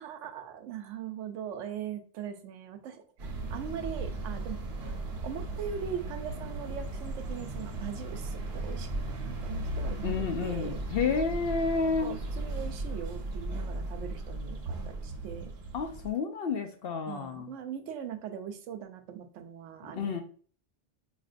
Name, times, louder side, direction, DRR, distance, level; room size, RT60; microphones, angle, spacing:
voice 1, 0.0-4.6 5.2-10.8 11.7-15.5 17.1-20.2, right 8 dB, 85° right, 8 dB, 0.9 m, -40 dB
sound 1, 3.2-16.1, right 2 dB, 60° right, 1.1 m, -36 dB
voice 2, 10.0-12.1 15.7-17.5 19.9-20.2, left 5 dB, 60° left, 6 dB, 0.7 m, -30 dB
5.0 x 2.6 x 2.5 m, 0.43 s
omnidirectional pair, 1.2 m